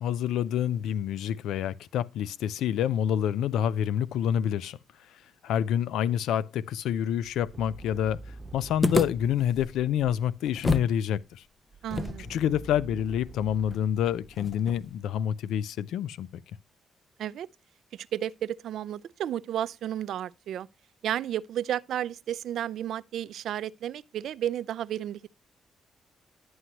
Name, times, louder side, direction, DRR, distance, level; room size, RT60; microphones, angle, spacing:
voice 1, 0.0-4.8 5.1-11.4 12.3-16.3, left 10 dB, 90° left, 0.4 m, -28 dB
sound 1, 7.2-10.5 11.7-15.0, right 3 dB, 45° right, 0.9 m, -47 dB
sound 2, 8.8-11.0 11.2-11.3 11.9-15.0, left 2 dB, 30° left, 0.5 m, -32 dB
voice 2, 11.8-12.4 17.2-17.5 17.9-20.7 21.0-25.3, right 11 dB, 80° right, 0.4 m, -32 dB
11.0 x 7.8 x 2.9 m
cardioid pair, 70°, 0 cm